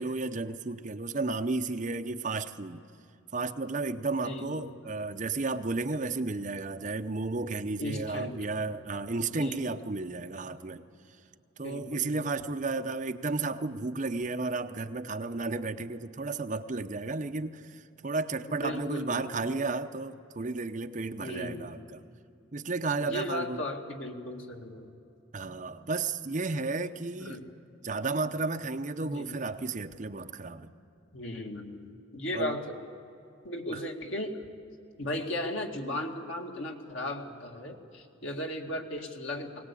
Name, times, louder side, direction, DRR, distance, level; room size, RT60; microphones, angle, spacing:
voice 1, 0.0-2.8 3.3-10.8 11.6-22.1 22.5-23.6 25.3-27.4 27.8-30.7 32.3-32.5 33.7-33.8, right 3 dB, 40° right, 8 dB, 0.7 m, -33 dB
voice 2, 4.2-4.7 7.8-8.4 9.3-9.8 11.6-12.2 18.5-19.5 21.2-21.8 23.0-24.9 27.2-27.4 29.0-29.3 31.1-32.8 33.4-34.4 35.0-39.7, left 1 dB, 75° left, 2 dB, 2.2 m, -36 dB
21.5 x 18.5 x 8.4 m, 2.6 s
head